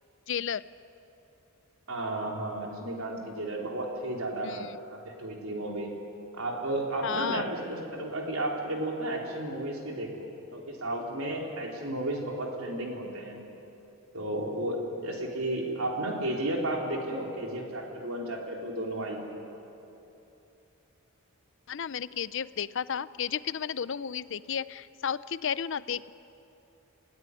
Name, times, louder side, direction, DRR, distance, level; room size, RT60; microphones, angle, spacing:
voice 1, 0.3-0.6 4.4-4.8 7.0-7.5 21.7-26.1, left 7 dB, 60° left, 17 dB, 0.5 m, -33 dB
voice 2, 1.9-5.9 6.3-13.4 14.1-19.4, right 1 dB, 75° right, 0 dB, 4.1 m, -33 dB
28.0 x 16.5 x 9.9 m, 2.9 s
head